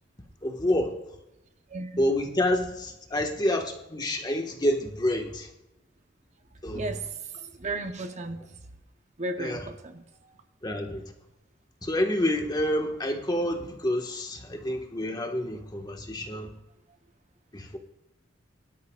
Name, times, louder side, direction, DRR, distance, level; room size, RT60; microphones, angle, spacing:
voice 1, 0.4-0.9 2.0-5.5 6.6-7.0 9.4-9.7 10.6-11.0 11.8-16.5 17.5-17.8, left 1 dB, 20° left, 3 dB, 1.5 m, -28 dB
voice 2, 1.7-2.0 6.7-7.1 7.3-8.4 9.2-10.4, right 2 dB, 40° right, 6 dB, 0.9 m, -35 dB
23.5 x 12.5 x 2.4 m, 0.94 s
head